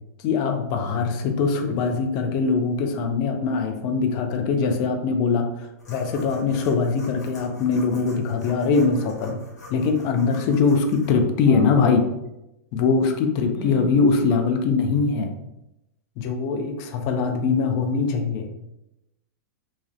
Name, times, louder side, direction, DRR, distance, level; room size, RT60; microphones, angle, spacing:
voice 1, 0.2-9.4 9.7-12.1 12.7-15.3 16.2-18.5, left 4 dB, 45° left, 5 dB, 0.4 m, -22 dB
sound 1, 5.8-11.1, left 1 dB, 90° left, 1.0 m, -45 dB
voice 2, 11.5-11.8 13.5-13.9, equal, 15° right, -1 dB, 0.6 m, -36 dB
2.3 x 2.1 x 2.5 m, 0.89 s
hypercardioid pair, 120°, 9 cm